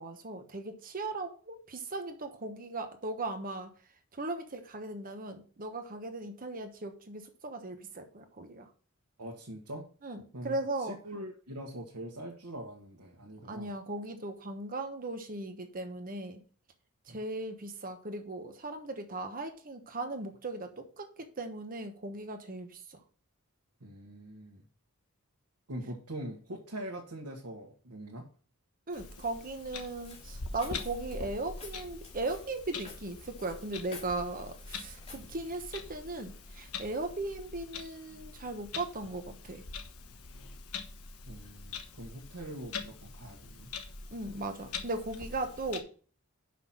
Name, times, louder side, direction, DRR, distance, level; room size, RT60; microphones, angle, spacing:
voice 1, 0.0-3.7 4.1-8.7 10.0-11.0 13.4-16.4 17.1-23.0 28.9-39.6 44.1-45.9, right 2 dB, 40° right, 6 dB, 1.1 m, -38 dB
voice 2, 9.2-9.9 10.3-13.7 17.1-17.2 23.8-24.6 25.7-28.3 35.2-35.3 41.3-43.7, right 1 dB, 80° right, -1 dB, 1.5 m, -43 dB
Clock, 28.9-45.8, left 4 dB, 80° left, 1.2 m, -44 dB
Walk footsteps, 28.9-37.2, left 4 dB, 30° left, 2.5 m, -54 dB
6.0 x 5.8 x 5.9 m, 0.39 s
head